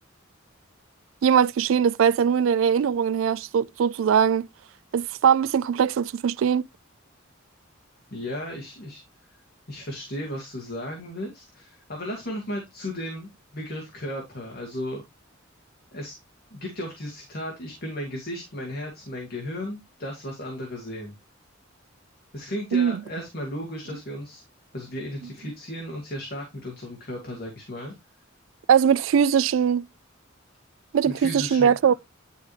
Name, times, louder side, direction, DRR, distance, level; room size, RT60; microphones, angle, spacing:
voice 1, 1.2-4.5 4.9-6.6 22.7-23.0 28.7-29.9 30.9-31.9, right 7 dB, 75° right, 0.3 m, -21 dB
voice 2, 8.1-9.0 9.3-9.4 9.7-15.0 15.9-16.2 16.5-21.1 22.3-24.4 24.7-27.9 31.0-31.7, left 1 dB, 50° left, 2.3 m, -35 dB
11.0 x 4.7 x 3.2 m
head